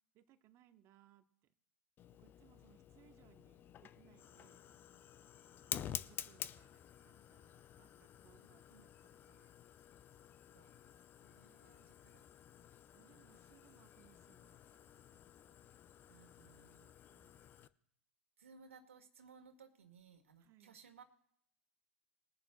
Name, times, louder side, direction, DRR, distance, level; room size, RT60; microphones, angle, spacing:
voice 1, 0.1-1.2 2.2-4.7 5.9-9.5 11.8-15.5 17.1-17.6 20.4-20.8, right 11 dB, 40° right, 9 dB, 1.1 m, -69 dB
Fire, 2.0-17.7, left 10 dB, 30° left, 0.6 m, -51 dB
voice 2, 8.4-8.9 10.5-10.9 11.2-12.2 16.1-16.9 18.4-21.0, right 5 dB, 75° right, 6 dB, 1.8 m, -62 dB
22.0 x 11.0 x 2.3 m, 0.72 s
figure-of-eight pair, 95°, 7 cm